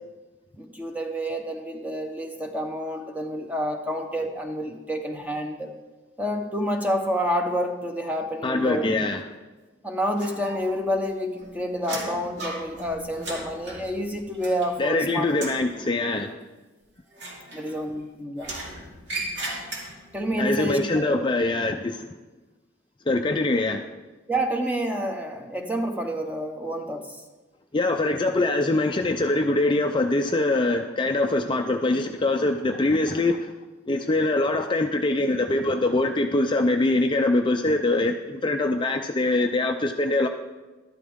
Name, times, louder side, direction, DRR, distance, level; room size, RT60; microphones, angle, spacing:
voice 1, 0.6-5.7 6.2-9.1 9.8-15.3 17.5-18.5 20.1-21.3 24.3-27.2, equal, 10° right, 4 dB, 0.9 m, -28 dB
voice 2, 8.4-9.2 14.8-16.4 20.4-22.1 23.1-23.9 27.7-33.5 33.9-40.3, left 2 dB, 25° left, 4 dB, 0.4 m, -23 dB
sound 1, 10.2-10.9 11.2-15.0 15.3-15.7 17.1-18.0 18.4-20.2, right 2 dB, 60° right, 2.5 m, -36 dB
12.5 x 12.0 x 3.6 m, 1.2 s
head